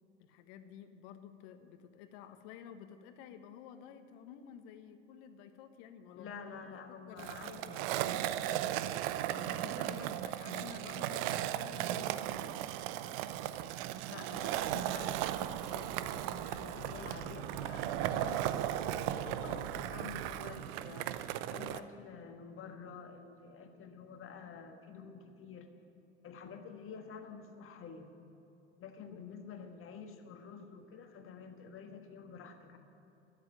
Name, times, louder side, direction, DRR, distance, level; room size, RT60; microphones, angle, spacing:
voice 1, 0.2-6.3 6.7-6.8 7.1-12.7 29.0-29.2, left 8 dB, 55° left, 9 dB, 1.3 m, -52 dB
voice 2, 6.1-8.2 14.1-25.7 26.2-28.1 28.8-32.8, left 6 dB, 35° left, 5 dB, 1.6 m, -49 dB
Skateboard, 7.2-21.8, right 12 dB, 55° right, 0.7 m, -36 dB
sound 1, 14.5-20.3, left 1 dB, 85° left, 2.5 m, -52 dB
12.5 x 10.0 x 9.9 m, 2.9 s
hypercardioid pair, 80°, 35 cm